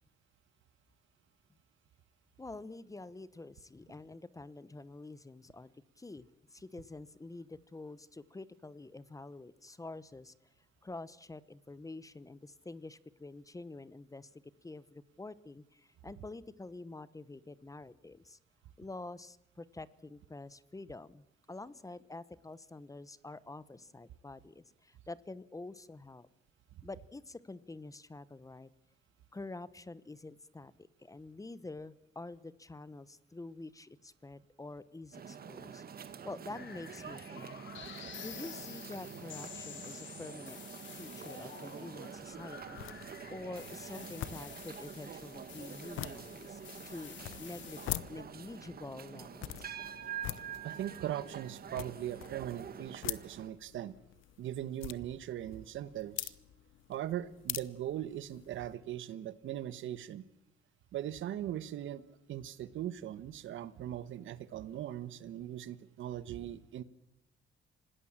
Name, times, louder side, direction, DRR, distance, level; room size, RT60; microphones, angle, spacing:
voice 1, 2.4-5.7 6.0-10.3 10.8-14.3 14.6-18.4 18.8-26.3 26.8-28.7 29.3-37.5 38.2-40.6 40.9-47.8 48.1-49.8, left 2 dB, 15° left, 17 dB, 1.0 m, -47 dB
flinders st trams, 35.1-53.5, right 7 dB, 50° right, 1.8 m, -47 dB
sound 1, 36.5-47.9, left 9 dB, 70° left, 2.7 m, -50 dB
sound 2, 42.2-58.7, left 14 dB, 85° left, 0.9 m, -46 dB
voice 2, 50.6-53.9 54.4-56.3 56.9-60.2 60.9-62.0 62.3-66.8, right 11 dB, 75° right, 15 dB, 1.2 m, -40 dB
26.5 x 18.0 x 7.5 m, 0.82 s
cardioid pair, 90°, 20 cm